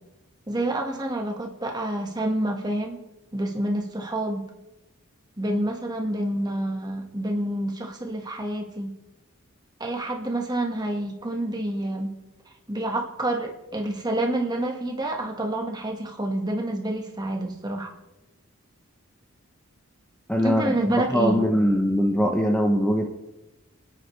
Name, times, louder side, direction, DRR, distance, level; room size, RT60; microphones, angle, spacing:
voice 1, 0.5-3.0 3.3-4.4 5.4-8.9 9.8-12.1 12.7-17.9 20.4-21.4, right 1 dB, 20° right, 1 dB, 1.6 m, -28 dB
voice 2, 20.3-23.1, equal, 5° left, 1 dB, 0.9 m, -22 dB
29.5 x 10.0 x 3.3 m, 1.0 s
head